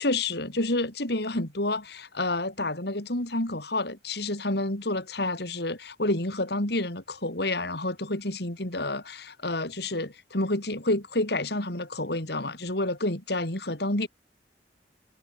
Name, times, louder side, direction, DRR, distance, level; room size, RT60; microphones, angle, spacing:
voice 1, 0.0-14.1, left 2 dB, 65° left, 4.3 m, -29 dB
head